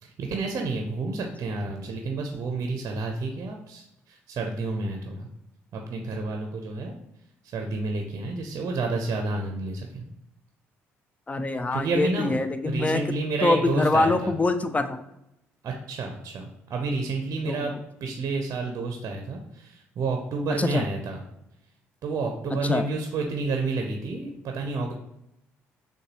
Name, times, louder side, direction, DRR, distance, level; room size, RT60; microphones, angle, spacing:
voice 1, 0.0-5.3 5.7-6.9 7.4-10.0 11.7-12.4 12.6-14.3 15.6-16.4 16.7-21.2 22.0-24.9, right 3 dB, 50° right, 3 dB, 0.6 m, -30 dB
voice 2, 11.3-13.0 13.4-15.0 17.5-17.7 20.6-20.8 22.6-22.8, left 2 dB, 20° left, 10 dB, 0.4 m, -24 dB
6.4 x 2.2 x 3.0 m, 0.84 s
hypercardioid pair, 50°, 7 cm